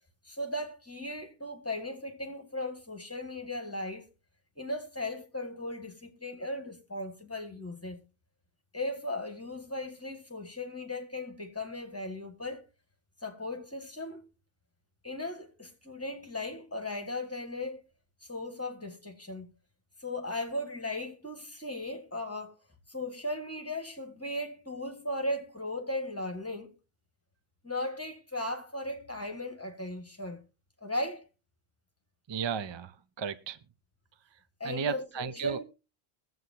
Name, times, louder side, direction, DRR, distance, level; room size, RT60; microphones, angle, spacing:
voice 1, 0.2-4.0 4.6-8.0 8.7-12.6 13.2-14.2 15.0-17.8 18.2-19.5 20.0-22.5 22.9-26.8 27.6-30.4 30.8-31.3 34.6-35.6, left 1 dB, 15° left, 1.6 m, -37 dB
voice 2, 32.3-33.6 34.6-35.6, right 6 dB, 35° right, 0.5 m, -34 dB
22.0 x 7.7 x 2.8 m
omnidirectional pair, 1.1 m